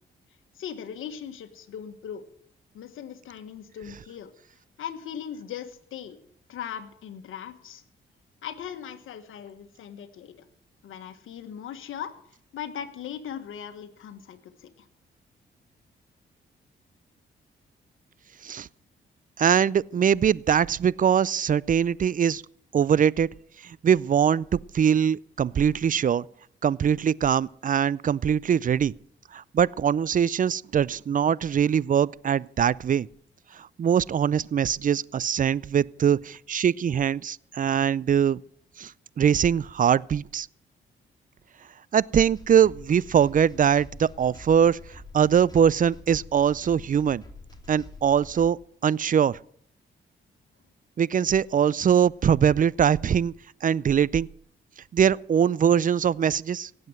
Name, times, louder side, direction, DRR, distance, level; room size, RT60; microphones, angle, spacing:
voice 1, 0.5-2.2 2.7-4.3 4.8-6.2 6.5-7.8 8.4-10.5 10.8-12.1 12.5-14.9, left 8 dB, 80° left, 1.5 m, -39 dB
voice 2, 19.4-22.4 22.7-23.3 23.6-26.2 26.6-28.9 29.3-33.1 33.8-38.4 38.8-38.9 39.2-40.5 41.9-44.8 45.1-47.2 47.7-49.4 51.0-53.3 53.6-54.3 54.9-56.7, right 8 dB, 40° right, 0.5 m, -22 dB
sound 1, 42.3-48.5, left 2 dB, 20° left, 3.4 m, -46 dB
17.5 x 7.9 x 7.7 m
cardioid pair, 60°, 21 cm